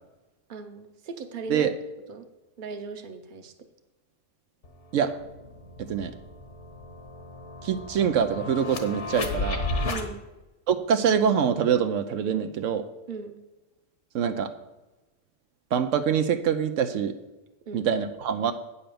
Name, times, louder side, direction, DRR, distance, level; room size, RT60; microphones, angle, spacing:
voice 1, 0.5-1.7 2.1-2.3 2.6-3.5 9.9-10.2 13.1-13.4 17.7-17.9, right 4 dB, 45° right, 7 dB, 1.0 m, -38 dB
sound 1, 4.6-4.7 5.1-10.1, left 2 dB, 65° left, 1.4 m, -33 dB
voice 2, 5.8-6.1 7.6-9.7 10.7-12.8 14.1-14.5 15.7-17.1 17.7-18.5, right 7 dB, 80° right, 8 dB, 1.0 m, -24 dB
8.9 x 5.6 x 6.9 m, 1.1 s
omnidirectional pair, 1.3 m